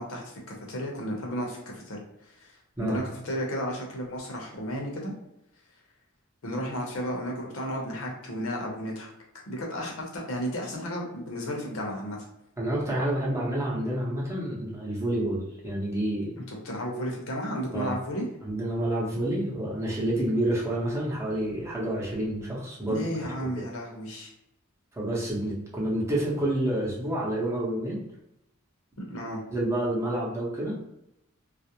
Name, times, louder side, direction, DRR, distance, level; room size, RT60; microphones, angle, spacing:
voice 1, 0.0-2.0 2.4-5.1 6.4-9.1 9.5-12.2 16.5-18.3 22.9-24.3 29.1-29.4, equal, 75° left, 0 dB, 0.7 m, -33 dB
voice 2, 12.6-16.3 17.7-18.0 18.4-23.6 24.9-28.0 29.5-30.8, right 1 dB, 15° right, -5 dB, 0.7 m, -29 dB
2.4 x 2.0 x 2.8 m, 0.83 s
head